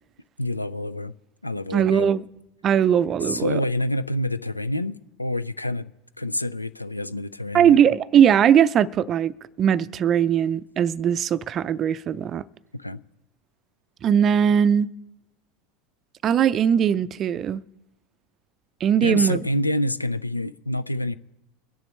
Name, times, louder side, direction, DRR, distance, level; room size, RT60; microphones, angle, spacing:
voice 1, 0.4-1.1 1.4-2.1 3.2-5.9 6.2-7.8 12.7-13.0 19.0-21.1, left 1 dB, 90° left, 0.4 m, -27 dB
voice 2, 1.7-2.2 2.6-3.6 7.5-9.3 9.6-12.4 14.0-14.9 16.2-17.6 18.8-19.4, right 8 dB, 35° right, 0.5 m, -20 dB
24.0 x 10.5 x 3.2 m
figure-of-eight pair, 80°, 0 cm